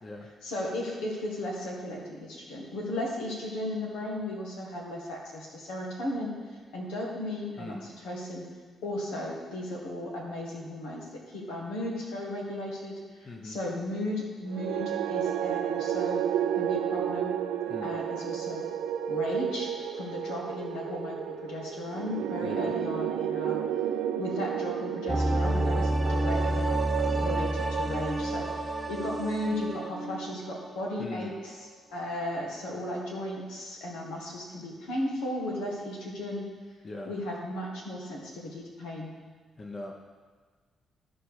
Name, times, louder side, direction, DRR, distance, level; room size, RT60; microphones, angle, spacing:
voice 1, 0.4-6.4 6.7-8.4 8.8-16.3 16.5-17.4 17.8-18.7 19.1-23.6 24.2-26.7 27.0-31.5 31.9-36.5 37.0-39.2, left 1 dB, 85° left, -1 dB, 1.7 m, -35 dB
voice 2, 7.5-7.9 13.2-13.6 17.7-18.0 22.4-22.7 26.3-26.7 31.0-31.3 36.8-37.1 39.6-39.9, left 2 dB, 40° left, 1 dB, 1.2 m, -40 dB
sound 1, 14.5-30.8, right 10 dB, 85° right, 0.5 m, -32 dB
sound 2, 25.1-30.7 31.0-31.1, right 1 dB, 10° right, 1.2 m, -29 dB
13.5 x 4.5 x 4.9 m, 1.5 s
supercardioid pair, 55°, 0 cm